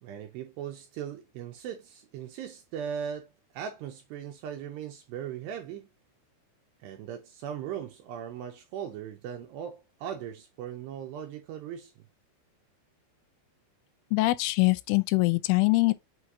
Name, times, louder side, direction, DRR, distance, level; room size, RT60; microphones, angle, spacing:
voice 1, 0.0-5.9 6.8-11.9, right 8 dB, 80° right, 2.5 m, -39 dB
voice 2, 14.1-15.9, left 23 dB, 85° left, 3.1 m, -23 dB
7.8 x 2.7 x 4.7 m
omnidirectional pair, 5.6 m